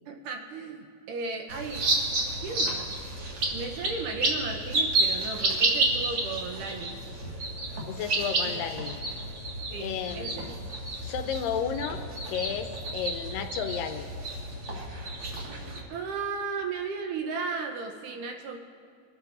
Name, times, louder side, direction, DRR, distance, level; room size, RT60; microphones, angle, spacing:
voice 1, 0.1-1.9 2.4-3.0 3.5-7.0 9.7-10.5 15.9-18.6, right 4 dB, 70° right, 2 dB, 2.2 m, -35 dB
sound 1, 1.5-15.8, right 2 dB, 45° right, 2.3 m, -30 dB
voice 2, 7.8-9.0 9.8-10.5 11.0-12.0 12.3-14.1, left 8 dB, 80° left, 7 dB, 2.2 m, -33 dB
24.5 x 12.5 x 2.6 m, 2.3 s
omnidirectional pair, 4.1 m